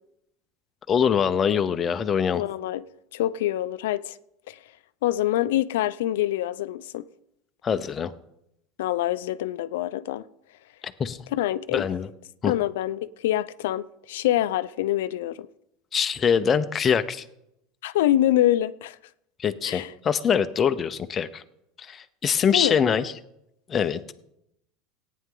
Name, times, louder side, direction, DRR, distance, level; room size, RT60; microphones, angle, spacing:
voice 1, 0.9-2.4 7.6-8.1 11.0-11.2 11.7-12.1 12.4-12.5 15.9-17.2 19.4-21.4 21.8-23.1 23.7-24.0, left 7 dB, 20° left, 0.5 m, -23 dB
voice 2, 2.3-2.8 3.1-4.2 4.5-4.6 5.0-7.0 8.8-10.2 11.3-11.8 12.4-15.4 17.8-19.0 19.6-19.9 22.5-22.8, left 13 dB, 85° left, 0.5 m, -25 dB
17.5 x 9.3 x 3.8 m
supercardioid pair, 170°, 0 cm